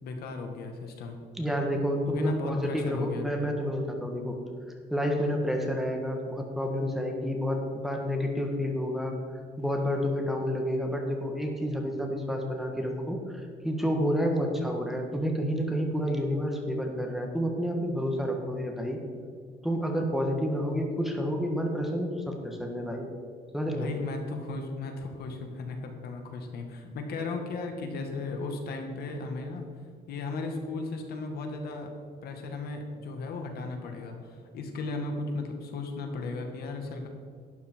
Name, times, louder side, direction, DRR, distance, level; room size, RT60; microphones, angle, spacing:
voice 1, 0.0-1.2 2.1-3.3 23.7-29.6 30.1-31.9 32.2-37.1, left 3 dB, 70° left, 4 dB, 1.9 m, -35 dB
voice 2, 1.4-4.4 4.9-9.2 9.6-13.2 13.6-19.0 19.6-23.1 23.5-23.9, equal, ahead, 2 dB, 1.5 m, -29 dB
12.0 x 10.0 x 4.6 m, 2.1 s
cardioid pair, 140°, 17 cm